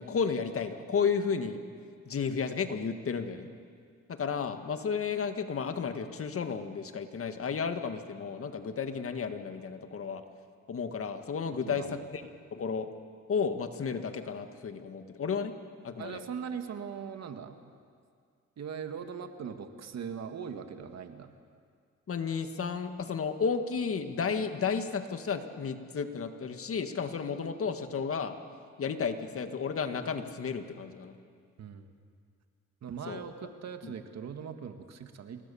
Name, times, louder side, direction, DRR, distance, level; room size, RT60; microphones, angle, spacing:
voice 1, 0.0-1.6 2.1-3.5 4.1-10.2 10.7-12.9 13.3-15.5 15.8-16.2 22.1-28.4 28.8-31.1 33.1-33.2 33.8-33.9, left 6 dB, 50° left, 7 dB, 1.9 m, -33 dB
voice 2, 16.0-17.6 18.6-21.3 31.6-31.9 32.8-35.4, right 7 dB, 60° right, 7 dB, 2.0 m, -40 dB
27.5 x 21.0 x 7.2 m, 2.1 s
cardioid pair, 90°, 30 cm